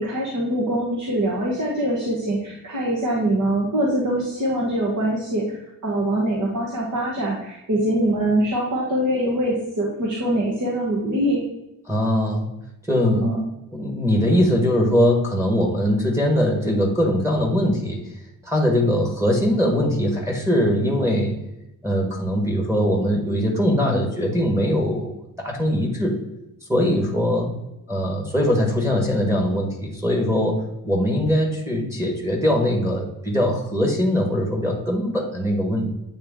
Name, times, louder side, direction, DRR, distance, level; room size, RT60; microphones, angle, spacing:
voice 1, 0.0-11.4 13.2-13.4 23.8-24.0, right 1 dB, 55° right, -3 dB, 1.4 m, -23 dB
voice 2, 11.9-12.5 12.9-13.3 13.7-18.0 18.4-21.3 21.8-26.2 26.7-27.5 27.9-35.9, equal, 10° right, 0 dB, 1.3 m, -21 dB
8.6 x 3.2 x 3.6 m, 0.91 s
wide cardioid pair, 105°, 35 cm